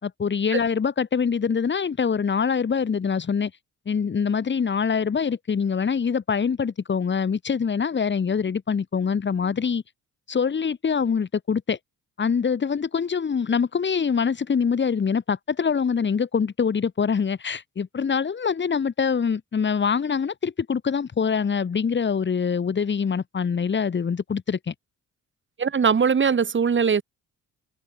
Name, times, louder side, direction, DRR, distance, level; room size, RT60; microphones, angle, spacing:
voice 1, 0.0-3.5 3.9-9.8 10.3-11.8 12.2-24.7, left 6 dB, 35° left, 2.5 m, -24 dB
voice 2, 25.6-27.0, right 6 dB, 40° right, 3.1 m, -20 dB
cardioid pair, 90°, 30 cm